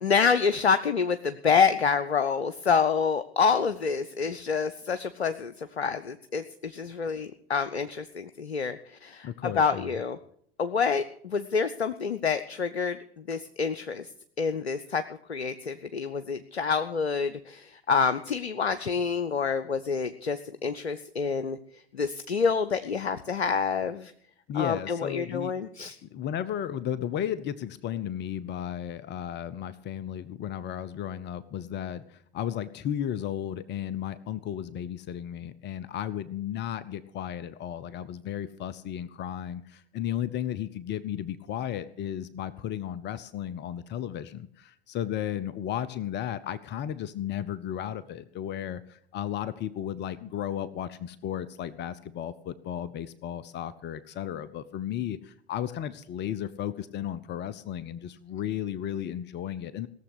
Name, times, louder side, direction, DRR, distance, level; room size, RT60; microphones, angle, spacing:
voice 1, 0.0-10.2 10.6-14.1 14.4-15.0 15.3-21.6 21.9-24.1 24.5-25.9, left 5 dB, 90° left, 11 dB, 0.6 m, -27 dB
voice 2, 9.2-10.0 24.5-25.5 26.1-59.9, left 10 dB, 35° left, 16 dB, 0.7 m, -34 dB
17.5 x 7.2 x 8.1 m, 0.65 s
figure-of-eight pair, 80°, 31 cm